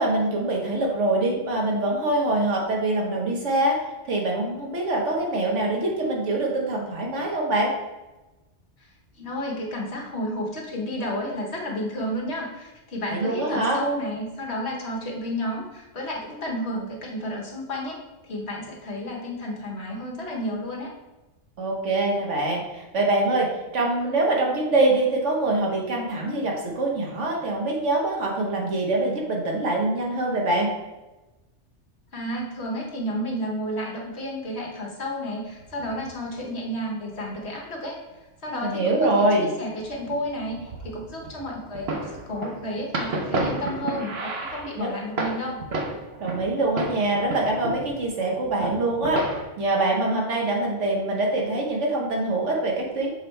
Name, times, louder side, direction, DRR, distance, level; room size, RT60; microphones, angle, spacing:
voice 1, 0.0-3.8 4.0-7.7 13.0-13.8 21.6-23.5 23.7-30.7 38.6-39.5 44.8-44.9 46.2-49.2 49.6-53.1, right 2 dB, 75° right, -1 dB, 1.6 m, -24 dB
voice 2, 9.1-20.9 32.1-38.0 38.4-45.6, equal, 65° left, -1 dB, 1.3 m, -31 dB
sound 1, 35.6-36.4 37.2-37.6 38.5-39.3 39.5-46.5 46.8-48.0 48.3-49.4, right 2 dB, 60° right, 1.0 m, -32 dB
6.6 x 3.3 x 4.4 m, 1.1 s
omnidirectional pair, 1.2 m